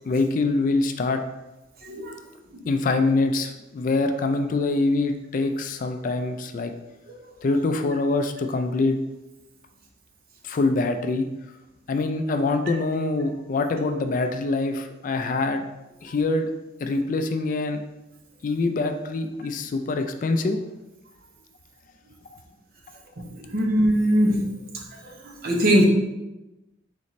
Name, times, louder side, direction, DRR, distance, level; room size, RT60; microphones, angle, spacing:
voice 1, 0.0-1.2 2.7-6.7 7.4-9.0 10.4-11.3 11.9-15.6 16.0-16.5 16.8-17.8 18.4-20.6, left 3 dB, 45° left, 6 dB, 0.3 m, -24 dB
voice 2, 1.8-2.1 7.1-7.2 23.3-24.5 25.0-25.9, equal, 50° right, 0 dB, 0.8 m, -21 dB
4.1 x 3.1 x 4.1 m, 1.0 s
head